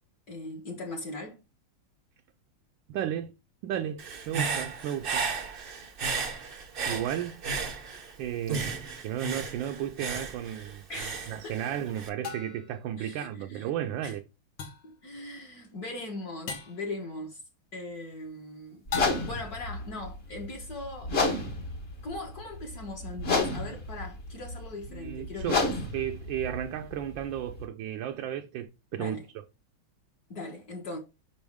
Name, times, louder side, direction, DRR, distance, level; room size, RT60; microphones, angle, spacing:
voice 1, 0.3-1.4 10.9-11.6 13.0-13.7 14.0-14.1 14.8-17.4 17.7-18.8 19.2-21.1 22.0-25.6 29.0-29.2 30.3-31.0, left 2 dB, 50° left, 1.7 m, -39 dB
voice 2, 2.9-3.3 3.6-5.3 6.9-7.4 8.2-10.8 11.3-14.2 24.9-25.6 25.9-29.4, right 10 dB, 75° right, 1.2 m, -34 dB
Human voice / Breathing, 4.0-8.1 8.5-12.1, right 5 dB, 60° right, 0.5 m, -34 dB
sound 1, 10.2-10.3 12.2-12.7 14.6-15.0 16.5-16.9 18.9-19.5, left 6 dB, 70° left, 1.8 m, -37 dB
sound 2, 18.9-27.6, left 3 dB, 35° left, 1.2 m, -32 dB
5.5 x 5.2 x 3.5 m
omnidirectional pair, 2.2 m